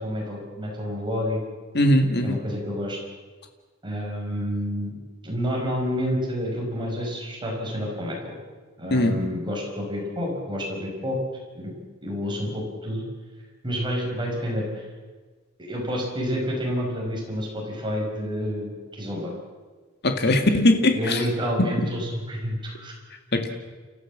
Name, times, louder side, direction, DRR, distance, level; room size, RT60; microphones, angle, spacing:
voice 1, 0.0-1.4 2.2-3.0 3.8-5.0 5.2-8.3 8.8-11.2 11.5-11.7 12.0-13.0 13.6-14.9 15.6-19.3 20.3-20.4 20.9-22.9, equal, 25° right, -1 dB, 5.7 m, -29 dB
voice 2, 1.7-2.4 8.9-9.2 20.0-21.3 23.3-23.5, left 1 dB, 55° left, 5 dB, 2.0 m, -20 dB
29.5 x 14.5 x 7.5 m, 1.3 s
head